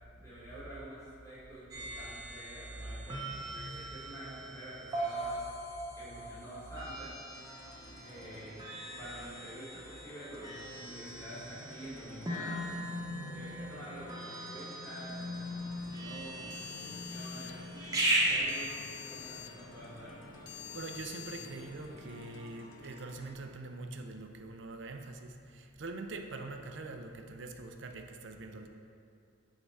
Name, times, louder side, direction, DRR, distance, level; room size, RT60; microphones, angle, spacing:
voice 1, 0.1-5.4 6.0-7.1 8.0-8.6 8.9-12.7 13.2-17.7 18.2-20.2, right 1 dB, 15° left, -10 dB, 1.6 m, -48 dB
sound 1, 1.7-18.4, right 1 dB, 20° right, 1.0 m, -38 dB
sound 2, 7.3-23.3, left 1 dB, 90° left, 0.9 m, -53 dB
voice 2, 7.7-8.4 18.3-18.4 20.7-28.7, right 3 dB, 60° right, 5 dB, 0.5 m, -44 dB
sound 3, 15.0-22.3, left 8 dB, 60° left, 0.5 m, -49 dB
8.0 x 3.7 x 4.7 m, 2.4 s
head